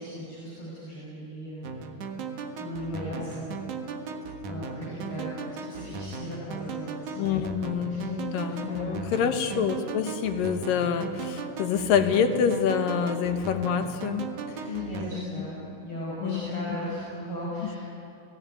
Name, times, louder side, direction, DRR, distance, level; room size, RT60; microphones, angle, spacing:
voice 1, 0.0-2.1 2.6-3.5 4.5-7.5 7.9-9.2 14.6-17.8, equal, 35° left, -6 dB, 6.2 m, -37 dB
sound 1, 1.6-15.1, right 4 dB, 65° right, 2.8 m, -37 dB
voice 2, 7.2-14.3 15.1-15.5 16.2-16.8 17.6-17.7, left 7 dB, 75° left, 7 dB, 2.9 m, -27 dB
29.5 x 18.0 x 9.8 m, 2.8 s
omnidirectional pair, 4.1 m